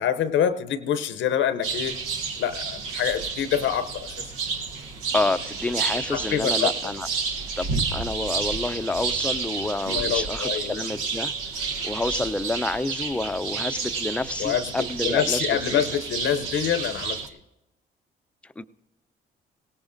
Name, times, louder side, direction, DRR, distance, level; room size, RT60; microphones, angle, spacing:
voice 1, 0.0-1.9 2.4-4.3 6.1-6.7 9.9-10.8 14.4-14.8 15.0-17.2, left 9 dB, 70° left, 11 dB, 0.6 m, -26 dB
sound 1, 1.6-17.3, right 5 dB, 90° right, 1.0 m, -30 dB
voice 2, 5.1-7.1 7.6-11.3 11.8-15.4 15.7-15.8 18.6-18.7, left 2 dB, 5° left, 11 dB, 0.5 m, -28 dB
18.0 x 17.5 x 2.6 m, 0.94 s
supercardioid pair, 65°, 20 cm